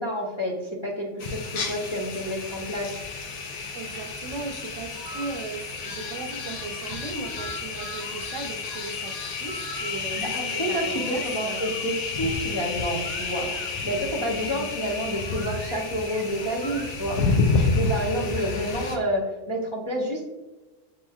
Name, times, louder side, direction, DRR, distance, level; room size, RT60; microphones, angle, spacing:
voice 1, 0.0-3.0 10.2-20.2, equal, 35° left, -5 dB, 0.5 m, -29 dB
sound 1, 1.2-19.0, left 4 dB, 75° left, 1.0 m, -30 dB
voice 2, 3.7-11.7 13.9-14.7 18.0-18.4, right 4 dB, 80° right, 6 dB, 0.9 m, -37 dB
sound 2, 4.9-5.3 5.7-8.2 8.6-10.3 10.7-13.7 14.3-17.1, right 2 dB, 40° right, 0.9 m, -44 dB
7.2 x 3.1 x 2.3 m, 1.2 s
omnidirectional pair, 1.3 m